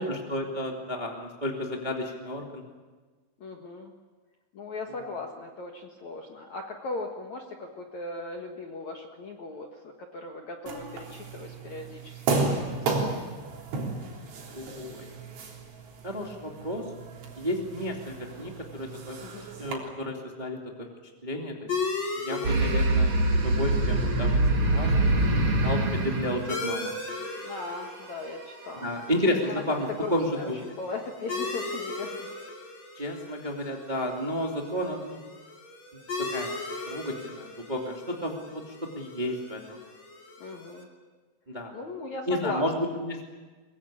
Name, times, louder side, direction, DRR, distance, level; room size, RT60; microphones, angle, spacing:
voice 1, 0.0-2.6 5.0-5.1 14.5-15.1 16.0-16.9 17.3-19.2 19.6-20.9 21.2-21.5 22.2-24.4 24.7-25.4 25.6-26.9 28.7-30.6 32.9-35.2 35.9-36.5 36.9-39.8 41.5-41.7 42.3-43.2, left 1 dB, 15° right, 0 dB, 1.4 m, -32 dB
voice 2, 3.4-3.9 4.5-12.8 13.1-13.2 19.2-19.5 22.7-22.8 27.4-28.9 29.4-29.6 30.0-32.3 40.4-40.9 41.7-42.6, left 3 dB, 55° left, 2 dB, 2.1 m, -38 dB
sound 1, 10.7-19.7, right 3 dB, 85° right, 6.1 m, -34 dB
sound 2, 21.7-40.8, left 3 dB, 35° left, 2.9 m, -38 dB
sound 3, 22.4-27.4, right 1 dB, 40° right, 2.2 m, -24 dB
23.0 x 22.5 x 8.7 m, 1.4 s
omnidirectional pair, 5.3 m